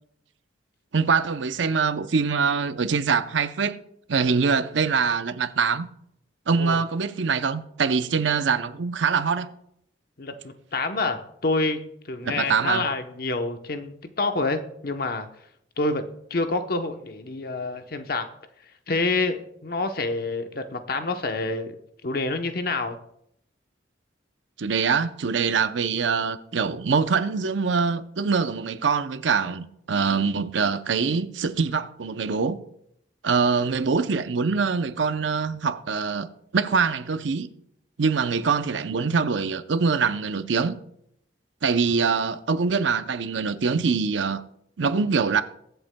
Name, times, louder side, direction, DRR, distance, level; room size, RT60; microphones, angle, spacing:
voice 1, 0.9-3.8 4.1-5.9 6.5-9.5 12.2-12.9 24.6-32.6 33.2-36.3 36.5-37.5 38.0-40.8 41.6-44.4 44.8-45.4, right 5 dB, 85° right, 0.6 m, -24 dB
voice 2, 10.2-15.3 15.8-16.0 16.3-18.3 18.9-21.8 22.0-23.0, left 3 dB, 55° left, 0.9 m, -27 dB
22.0 x 8.0 x 2.2 m
head